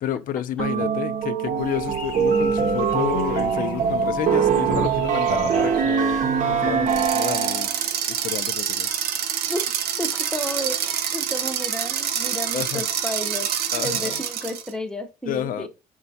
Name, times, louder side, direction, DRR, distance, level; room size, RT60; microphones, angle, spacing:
voice 1, 0.0-7.7 8.1-9.0 12.5-12.8 13.7-14.2 15.2-15.7, left 11 dB, 60° left, 0.5 m, -30 dB
sound 1, 0.6-7.9, right 6 dB, 50° right, 0.7 m, -23 dB
sound 2, 1.6-7.1, left 5 dB, 80° left, 0.8 m, -41 dB
sound 3, 6.9-14.7, right 9 dB, 90° right, 0.6 m, -26 dB
voice 2, 10.0-13.5 13.8-15.7, equal, 5° left, 0.7 m, -32 dB
5.3 x 2.2 x 4.1 m
cardioid pair, 110°, 16 cm